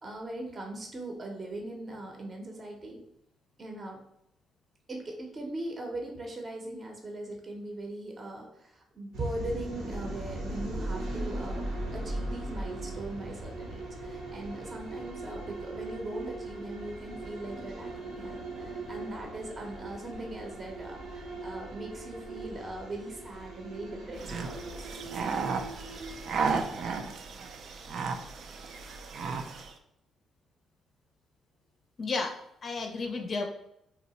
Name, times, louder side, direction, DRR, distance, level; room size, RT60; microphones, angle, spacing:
voice 1, 0.0-3.0 3.6-4.0 4.9-11.6 11.9-24.9, right 1 dB, 35° right, 1 dB, 0.7 m, -40 dB
sound 1, 9.1-27.1, right 2 dB, 80° right, 0.7 m, -39 dB
sound 2, 24.2-29.7, right 5 dB, 65° right, 0.4 m, -34 dB
voice 2, 32.0-33.4, left 3 dB, 45° left, 4 dB, 0.5 m, -33 dB
2.8 x 2.1 x 4.1 m, 0.76 s
cardioid pair, 90°, 0 cm